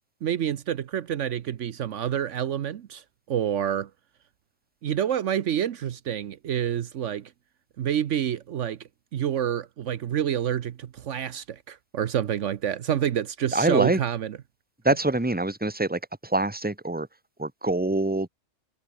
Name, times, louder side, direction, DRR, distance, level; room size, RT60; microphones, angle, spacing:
voice 1, 0.2-3.0 3.3-3.9 4.8-7.3 7.8-8.8 9.1-14.4, right 9 dB, 70° right, 1.1 m, -28 dB
voice 2, 13.5-14.0 14.8-17.1 17.4-18.3, right 2 dB, 5° right, 1.5 m, -25 dB
omnidirectional pair, 1.3 m